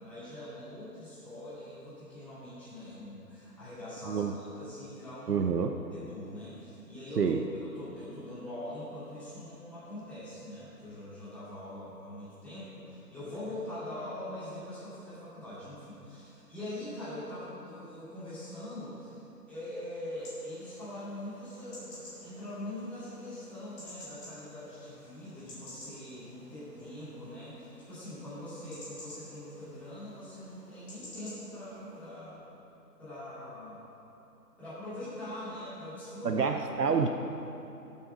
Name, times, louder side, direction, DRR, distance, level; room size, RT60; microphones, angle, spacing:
voice 1, 0.0-5.5 5.9-19.2 19.5-32.4 33.0-33.8 34.6-36.5 36.8-37.0, left 1 dB, 5° left, -14 dB, 2.5 m, -43 dB
voice 2, 4.1-4.4 5.3-5.8 7.2-7.4 36.2-37.1, right 6 dB, 70° right, 5 dB, 0.9 m, -28 dB
sound 1, 20.1-32.1, left 1 dB, 20° left, 2.4 m, -52 dB
13.0 x 7.0 x 6.2 m, 2.9 s
figure-of-eight pair, 160°, 49 cm